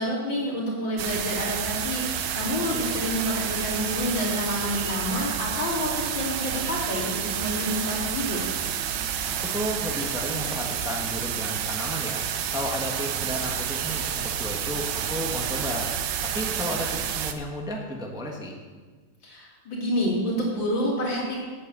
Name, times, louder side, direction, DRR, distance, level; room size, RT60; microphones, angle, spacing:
voice 1, 0.0-2.0 2.3-8.4 19.2-21.4, equal, 80° left, -4 dB, 3.7 m, -28 dB
sound 1, 1.0-17.3, right 8 dB, 75° right, 1.4 m, -29 dB
voice 2, 9.5-12.2 12.5-15.9 16.3-18.5, equal, 5° right, 0 dB, 1.1 m, -33 dB
8.8 x 8.3 x 7.5 m, 1.4 s
omnidirectional pair, 2.0 m